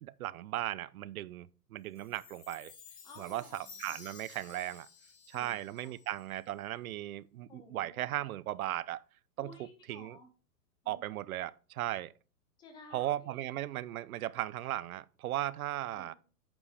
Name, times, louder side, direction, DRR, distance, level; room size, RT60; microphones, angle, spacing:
voice 1, 0.0-2.7 3.2-4.9 5.3-9.0 9.4-9.5 9.9-10.2 10.9-12.1 12.9-16.1, right 14 dB, 60° right, 0.5 m, -37 dB
Chime, 2.0-6.4, left 6 dB, 85° left, 1.9 m, -54 dB
voice 2, 3.0-4.0 5.3-6.0 7.5-8.1 9.4-10.3 10.8-11.1 12.6-13.5 15.9-16.1, left 3 dB, 10° left, 0.5 m, -55 dB
8.4 x 5.2 x 3.4 m
hypercardioid pair, 140°, 48 cm